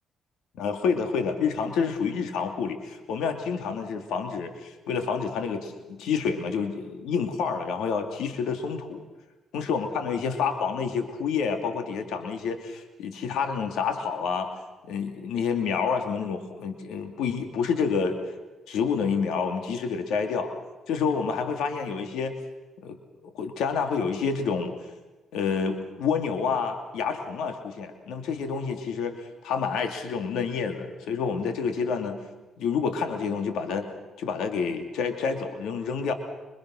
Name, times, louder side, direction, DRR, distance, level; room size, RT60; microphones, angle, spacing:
voice 1, 0.6-9.0 9.5-14.5 14.9-18.2 18.7-20.5 20.9-22.3 22.8-23.0 23.2-24.7 25.3-32.2 32.6-33.9 34.2-36.1, left 5 dB, 85° left, 6 dB, 2.6 m, -28 dB
25.5 x 24.5 x 6.4 m, 1.2 s
cardioid pair, 90°, 0 cm